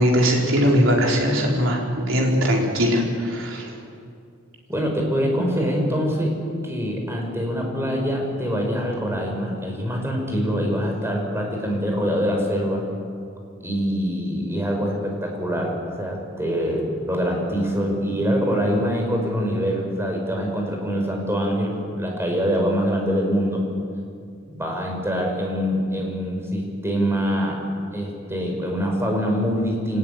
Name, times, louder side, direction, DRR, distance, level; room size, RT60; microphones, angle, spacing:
voice 1, 0.0-3.7, equal, 70° right, -1 dB, 4.9 m, -20 dB
voice 2, 4.7-12.9 13.6-16.8 17.1-23.6 24.5-27.6 27.9-30.0, equal, 10° right, 1 dB, 5.6 m, -24 dB
26.0 x 19.0 x 9.8 m, 2.3 s
head